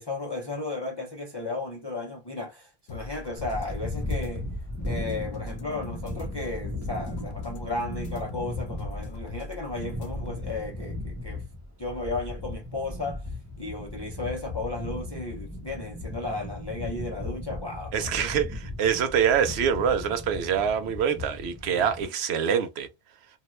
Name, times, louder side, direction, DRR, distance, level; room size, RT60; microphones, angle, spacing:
voice 1, 0.0-4.5 4.9-11.4 11.8-13.3 13.6-18.3 21.7-21.8, left 2 dB, 30° left, 0.5 m, -34 dB
sound 1, 2.9-10.6, left 2 dB, 85° left, 0.9 m, -41 dB
sound 2, 3.4-22.1, left 2 dB, 20° right, 0.8 m, -36 dB
voice 2, 17.9-22.9, right 8 dB, 80° right, 0.9 m, -25 dB
2.7 x 2.3 x 3.0 m
omnidirectional pair, 1.1 m